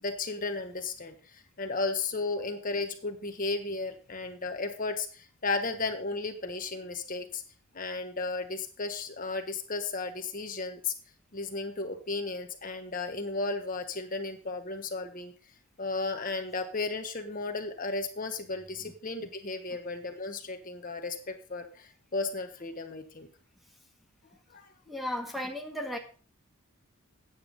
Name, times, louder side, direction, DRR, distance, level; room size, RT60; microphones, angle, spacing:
voice 1, 0.0-7.4 7.7-10.9 11.3-15.3 15.8-23.3 24.5-24.7, left 3 dB, 40° left, 6 dB, 1.0 m, -34 dB
voice 2, 24.9-26.0, left 1 dB, ahead, 4 dB, 1.1 m, -34 dB
9.0 x 7.7 x 5.2 m, 0.38 s
head